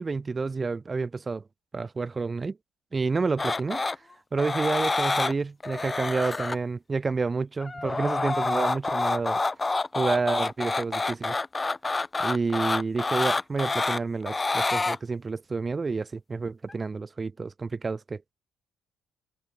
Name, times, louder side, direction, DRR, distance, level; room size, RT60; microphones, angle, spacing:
voice 1, 0.0-1.4 1.7-2.6 2.9-3.8 4.3-9.4 9.9-11.4 12.2-18.3, right 4 dB, 30° right, 0.9 m, -29 dB
sound 1, 3.4-4.0 4.4-5.3 5.6-6.6 7.6-15.0 16.7-16.8, left 3 dB, 25° left, 2.7 m, -27 dB
cardioid pair, 80°, 0 cm